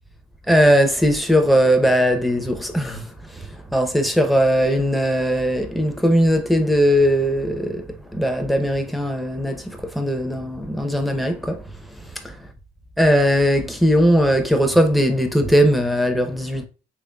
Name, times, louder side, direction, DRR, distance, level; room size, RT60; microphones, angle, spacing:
voice 1, 0.5-7.9 8.1-11.6 12.2-12.4 13.0-16.7, equal, ahead, 0.6 m, -19 dB
3.8 x 3.2 x 2.2 m
cardioid pair, 90°, 20 cm